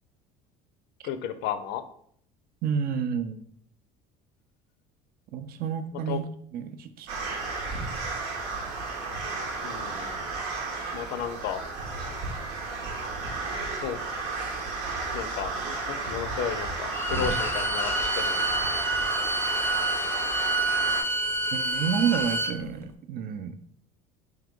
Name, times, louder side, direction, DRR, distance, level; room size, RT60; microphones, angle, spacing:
voice 1, 1.0-1.8 6.1-6.2 9.6-10.4 10.9-11.6 12.1-12.2 13.8-14.3 14.8-18.4, left 9 dB, 65° left, 11 dB, 0.5 m, -34 dB
voice 2, 2.6-3.4 5.3-6.3 6.5-7.1 21.5-23.6, right 7 dB, 50° right, 9 dB, 0.5 m, -29 dB
sound 1, 7.1-21.0, right 3 dB, 85° right, 0.9 m, -33 dB
Bowed string instrument, 16.9-22.6, right 1 dB, 10° left, 0.4 m, -28 dB
3.6 x 3.0 x 3.6 m, 0.65 s
supercardioid pair, 90°, 19 cm